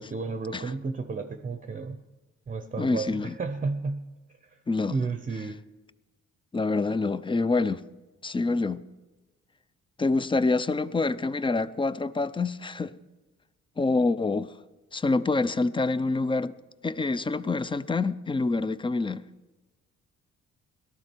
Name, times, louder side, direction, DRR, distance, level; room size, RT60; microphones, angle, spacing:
voice 1, 0.0-2.0 2.5-4.1 4.4-4.6 4.9-5.6, right 4 dB, 25° right, 0.7 m, -32 dB
voice 2, 2.8-3.3 4.7-5.0 6.5-7.8 8.2-8.8 10.0-12.9 13.8-14.5 14.9-16.5 16.8-19.2, left 3 dB, 15° left, 0.5 m, -26 dB
18.0 x 12.5 x 4.5 m
cardioid pair, 90°, 30 cm